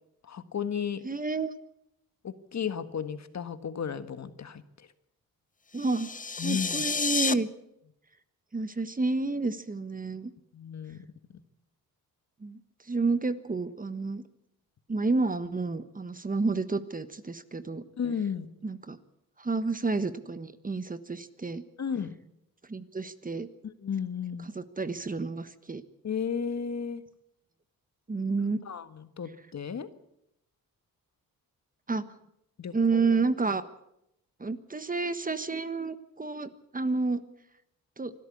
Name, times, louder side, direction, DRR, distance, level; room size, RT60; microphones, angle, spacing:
voice 1, 0.2-1.0 2.2-4.9 6.4-6.9 10.5-11.0 18.0-18.5 21.8-22.1 23.6-24.5 26.0-27.0 28.6-29.9 32.6-33.0, left 7 dB, 50° left, 11 dB, 1.6 m, -34 dB
voice 2, 1.0-1.5 5.7-6.1 6.4-7.5 8.5-10.3 12.4-12.6 12.9-14.2 14.9-17.8 18.6-19.0 19.4-21.6 22.7-23.5 24.5-25.8 28.1-28.6 31.9-32.0 32.7-33.6 34.4-37.2 38.0-38.1, right 3 dB, 25° right, 12 dB, 1.4 m, -30 dB
sound 1, 5.7-7.3, left 5 dB, 20° left, 0.8 m, -30 dB
25.0 x 13.0 x 8.6 m, 0.81 s
cardioid pair, 85°, 36 cm